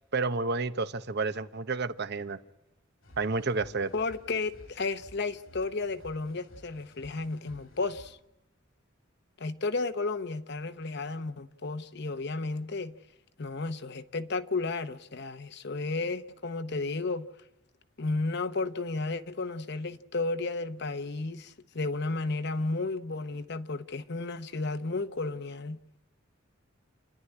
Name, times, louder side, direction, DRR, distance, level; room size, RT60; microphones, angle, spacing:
voice 1, 0.1-2.4 3.2-3.9, right 3 dB, 55° right, 0.8 m, -30 dB
sound 1, 3.0-8.1, equal, 85° left, 2.8 m, -54 dB
voice 2, 3.9-8.2 9.4-13.0 13.4-17.3 18.0-25.8, left 3 dB, 55° left, 0.9 m, -33 dB
29.0 x 11.5 x 10.0 m
head